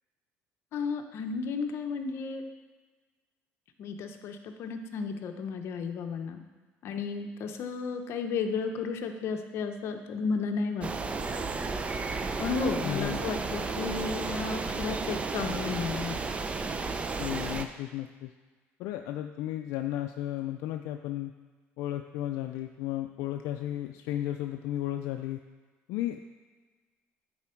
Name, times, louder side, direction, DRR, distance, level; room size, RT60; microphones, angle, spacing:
voice 1, 0.7-2.4 3.8-6.4 6.8-10.9 12.4-16.4, left 5 dB, 60° left, 5 dB, 0.8 m, -33 dB
sound 1, 10.8-17.6, right 4 dB, 25° right, 0.5 m, -33 dB
voice 2, 12.8-13.2 17.2-18.3 18.8-21.3 21.8-25.4 25.9-26.2, left 13 dB, 85° left, 5 dB, 0.4 m, -34 dB
9.7 x 4.3 x 4.5 m, 1.4 s
cardioid pair, 115°, 5 cm